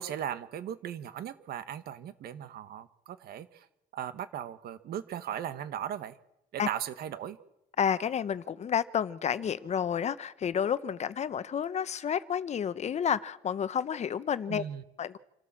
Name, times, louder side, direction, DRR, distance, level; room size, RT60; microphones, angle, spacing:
voice 1, 0.0-3.6 3.9-6.2 6.5-7.4 14.5-14.8, right 10 dB, 65° right, 12 dB, 1.5 m, -37 dB
voice 2, 7.8-14.6 15.0-15.2, left 8 dB, 40° left, 15 dB, 0.9 m, -30 dB
27.5 x 12.5 x 7.5 m, 0.87 s
cardioid pair, 110°, 17 cm